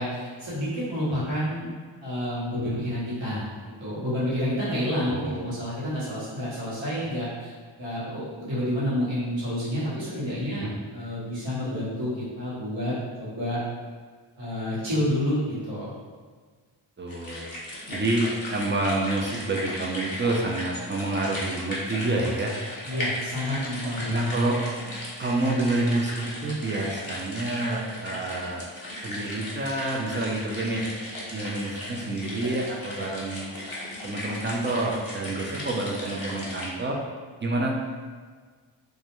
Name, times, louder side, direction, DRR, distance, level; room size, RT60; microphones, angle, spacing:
voice 1, 0.0-1.7 2.0-3.5 3.8-7.5 7.8-13.6 14.4-15.9 22.8-24.2, equal, 65° right, -9 dB, 1.0 m, -29 dB
voice 2, 5.1-5.5 10.6-10.7 17.0-17.5 17.9-22.5 24.1-24.6 25.2-28.7 29.0-30.8 31.3-33.5 34.0-37.0 37.4-37.8, right 2 dB, 25° right, -1 dB, 0.3 m, -28 dB
sound 1, 17.1-36.7, left 1 dB, 45° left, 0.7 m, -36 dB
2.3 x 2.1 x 2.9 m, 1.5 s
wide cardioid pair, 65°, 49 cm